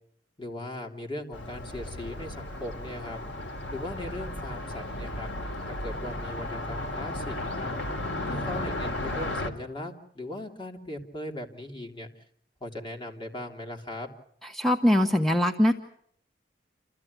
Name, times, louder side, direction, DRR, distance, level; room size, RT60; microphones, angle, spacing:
voice 1, 0.4-3.2 3.7-5.3 5.6-7.7 8.2-12.1 12.6-14.1, left 1 dB, 25° left, 2 dB, 3.0 m, -38 dB
Car passing by, 1.3-9.5, left 1 dB, 85° left, 2.8 m, -34 dB
voice 2, 14.5-15.7, left 1 dB, ahead, 6 dB, 1.1 m, -22 dB
28.5 x 14.5 x 9.6 m, 0.69 s
head